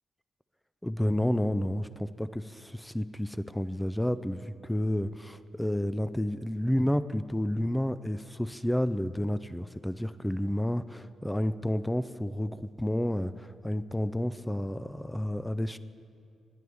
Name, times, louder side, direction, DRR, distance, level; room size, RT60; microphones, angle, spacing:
voice 1, 0.8-15.8, left 1 dB, 5° left, 14 dB, 0.4 m, -30 dB
20.0 x 11.0 x 3.4 m, 2.5 s
cardioid pair, 95°, 0 cm